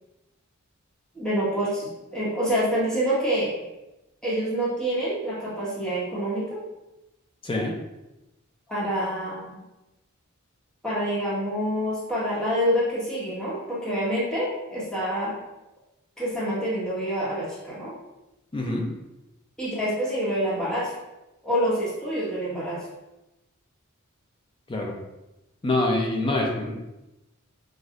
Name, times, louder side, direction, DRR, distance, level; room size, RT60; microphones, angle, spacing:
voice 1, 1.1-3.6 4.2-6.6 8.7-9.6 10.8-15.3 16.2-17.9 19.6-21.0 21.4-22.8, equal, 5° left, -9 dB, 1.4 m, -27 dB
voice 2, 7.4-7.7 18.5-18.9 24.7-25.0 25.6-26.7, left 2 dB, 25° left, 0 dB, 0.5 m, -25 dB
6.1 x 2.5 x 2.5 m, 0.97 s
head